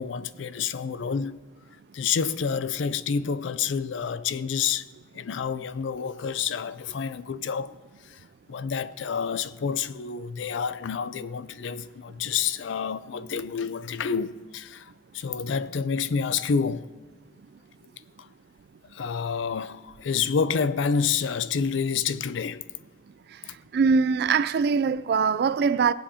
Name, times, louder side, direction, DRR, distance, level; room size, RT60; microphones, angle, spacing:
voice 1, 0.0-1.4 1.9-4.8 5.1-7.7 8.1-8.2 8.5-16.9 18.2-18.3 18.9-22.6, left 6 dB, 80° left, 0.4 m, -28 dB
voice 2, 23.7-25.9, right 5 dB, 55° right, 0.3 m, -22 dB
20.5 x 7.6 x 2.8 m
head